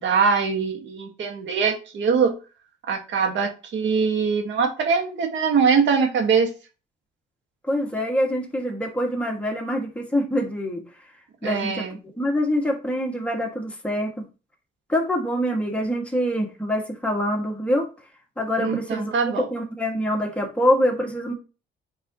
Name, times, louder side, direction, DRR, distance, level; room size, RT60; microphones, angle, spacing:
voice 1, 0.0-2.4 2.9-6.5 11.4-12.0 18.6-19.5, right 5 dB, 70° right, 3 dB, 2.0 m, -22 dB
voice 2, 7.7-10.8 11.4-14.2 14.9-17.9 18.4-21.3, equal, 5° left, -1 dB, 2.3 m, -25 dB
9.3 x 4.6 x 3.2 m, 0.32 s
cardioid pair, 90°, 20 cm